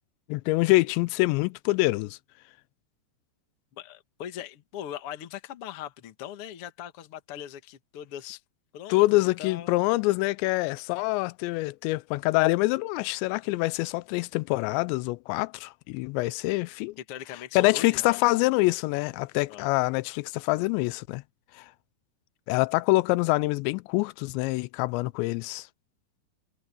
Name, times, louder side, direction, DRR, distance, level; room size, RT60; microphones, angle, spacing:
voice 1, 0.3-2.2 8.9-17.0 17.6-21.2 22.5-25.7, left 22 dB, 90° left, 2.8 m, -25 dB
voice 2, 3.7-8.4 8.7-9.9 17.0-18.4 19.5-19.7, left 10 dB, 65° left, 1.4 m, -40 dB
omnidirectional pair, 5.0 m